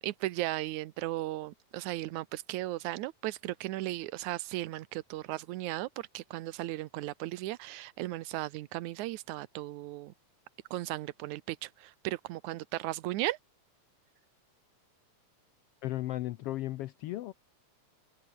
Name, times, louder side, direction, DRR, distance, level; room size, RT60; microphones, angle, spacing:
voice 1, 0.0-10.1 10.7-13.4, right 17 dB, 80° right, 2.2 m, -36 dB
voice 2, 15.8-17.3, left 15 dB, 85° left, 1.3 m, -35 dB
omnidirectional pair, 3.5 m